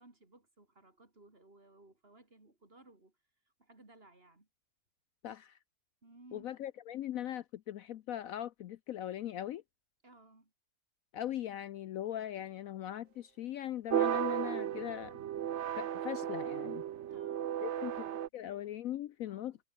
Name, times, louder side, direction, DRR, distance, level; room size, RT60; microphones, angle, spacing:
voice 1, 0.0-3.1 3.6-4.5 6.0-6.5 10.0-10.5 17.1-18.3 19.2-19.6, right 2 dB, 35° right, 4.0 m, -60 dB
voice 2, 5.2-5.6 6.3-9.6 11.1-15.2 15.8-16.8 17.6-18.1 18.3-19.6, left 12 dB, 65° left, 1.0 m, -40 dB
sound 1, 13.9-18.3, right 10 dB, 55° right, 0.8 m, -35 dB
omnidirectional pair, 1.7 m